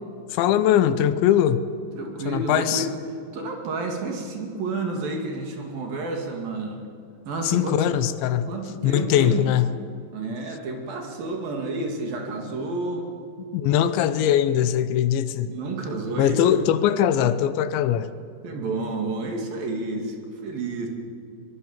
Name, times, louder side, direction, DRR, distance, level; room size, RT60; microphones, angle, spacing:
voice 1, 0.3-1.6 2.3-2.9 7.4-8.5 8.8-9.7 13.5-15.6 16.2-18.1, left 10 dB, 80° left, 13 dB, 3.1 m, -21 dB
voice 2, 2.0-2.9 3.3-6.9 7.3-7.8 8.5-9.4 10.1-13.1 13.6-14.2 15.4-16.5 18.4-20.9, right 3 dB, 55° right, 2 dB, 3.8 m, -30 dB
23.0 x 22.0 x 7.3 m, 2.5 s
omnidirectional pair, 5.3 m